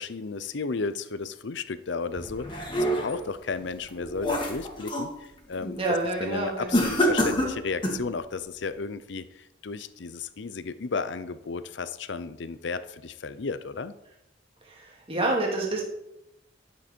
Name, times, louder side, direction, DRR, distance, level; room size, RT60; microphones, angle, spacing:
voice 1, 0.0-2.6 3.0-5.8 6.2-13.9, left 4 dB, 70° left, 13 dB, 0.6 m, -33 dB
sound 1, 2.2-3.3 3.8-5.1 5.5-5.9 6.7-8.1, equal, 25° left, 2.1 m, -27 dB
voice 2, 5.8-6.8 14.7-15.8, right 2 dB, 30° right, -2 dB, 2.5 m, -28 dB
12.0 x 7.6 x 4.5 m, 0.86 s
head